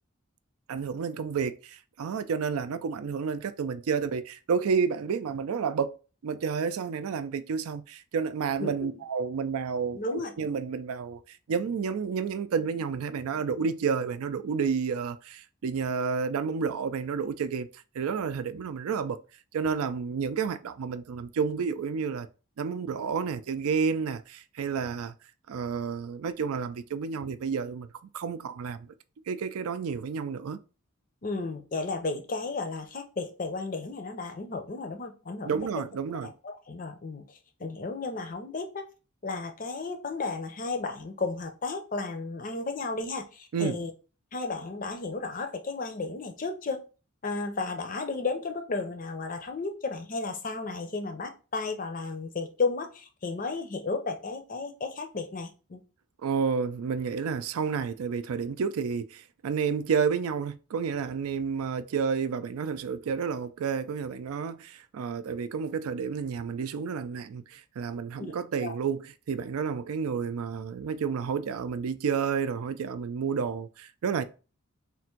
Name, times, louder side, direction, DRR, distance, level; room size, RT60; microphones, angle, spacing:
voice 1, 0.7-5.9 6.2-19.2 19.5-22.3 22.6-25.1 25.5-27.9 28.1-28.9 29.3-30.6 35.4-36.3 43.5-43.9 56.2-74.2, right 6 dB, 80° right, 0.4 m, -30 dB
voice 2, 8.6-8.9 9.9-10.3 31.2-35.6 36.2-38.9 39.2-43.9 44.3-46.8 47.2-55.8 68.2-68.3 68.6-68.7, left 3 dB, 35° left, 0.5 m, -33 dB
3.4 x 2.5 x 4.4 m
head